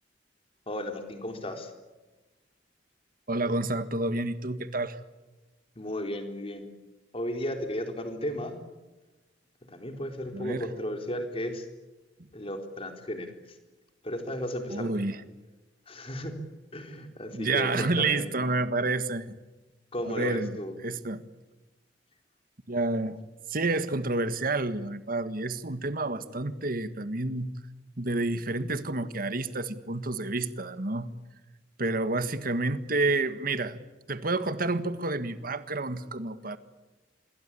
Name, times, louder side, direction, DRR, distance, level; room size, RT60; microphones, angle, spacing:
voice 1, 0.7-1.7 5.8-6.7 7.1-8.6 9.7-11.7 12.3-13.6 14.0-15.0 15.9-16.4 16.7-18.3 19.9-20.8, left 1 dB, 30° left, 5 dB, 4.0 m, -34 dB
voice 2, 3.3-5.0 10.3-10.7 14.7-15.2 17.3-19.3 20.0-20.6 20.8-21.2 22.7-23.2 23.5-27.5 28.0-31.1 31.8-33.8 34.1-36.6, right 2 dB, 50° right, 11 dB, 1.7 m, -29 dB
27.0 x 22.0 x 8.6 m, 1.2 s
head